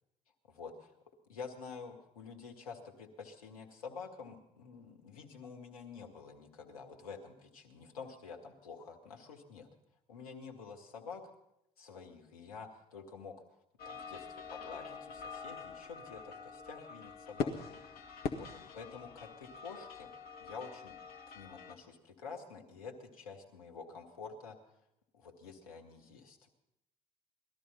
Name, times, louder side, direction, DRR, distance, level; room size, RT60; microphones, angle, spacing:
voice 1, 0.4-0.9 1.3-9.7 10.1-11.3 11.8-13.4 13.9-17.6 18.4-20.1 20.4-21.0 21.3-24.6 25.1-26.4, left 5 dB, 80° left, 3 dB, 1.7 m, -48 dB
sound 1, 13.8-21.7, left 5 dB, 55° left, 1.5 m, -44 dB
19.0 x 13.0 x 5.5 m, 0.83 s
figure-of-eight pair, 55°, 18 cm